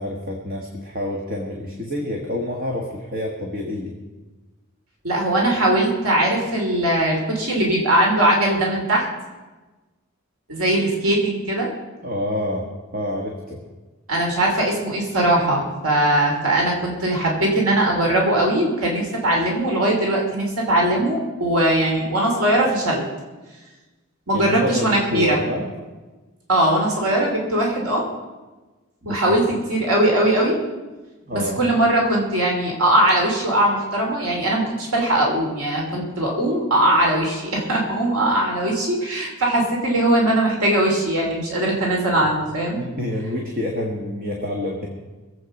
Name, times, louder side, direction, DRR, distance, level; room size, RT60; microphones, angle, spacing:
voice 1, 0.0-3.9 12.0-13.6 24.3-25.7 29.0-29.4 31.2-31.6 42.7-44.9, left 1 dB, 40° right, 0 dB, 1.6 m, -28 dB
voice 2, 5.0-9.0 10.5-11.7 14.1-23.0 24.3-25.4 26.5-28.0 29.1-30.6 31.3-42.8, right 1 dB, 85° right, -1 dB, 2.7 m, -20 dB
21.5 x 8.1 x 5.4 m, 1.2 s
head